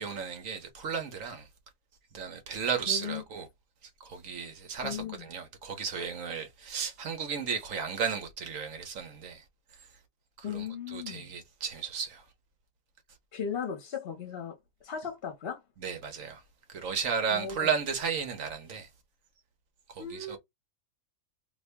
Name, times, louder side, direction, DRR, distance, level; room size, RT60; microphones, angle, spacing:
voice 1, 0.0-1.5 2.1-3.5 4.0-9.4 10.5-10.6 10.9-12.2 15.8-16.4 16.7-18.9 19.9-20.4, right 6 dB, 75° right, 1.4 m, -34 dB
voice 2, 2.9-3.2 4.8-5.2 10.4-11.3 13.3-14.6 14.8-15.6 17.3-17.7 20.0-20.4, left 6 dB, 50° left, 1.0 m, -36 dB
2.9 x 2.7 x 3.3 m
omnidirectional pair, 1.4 m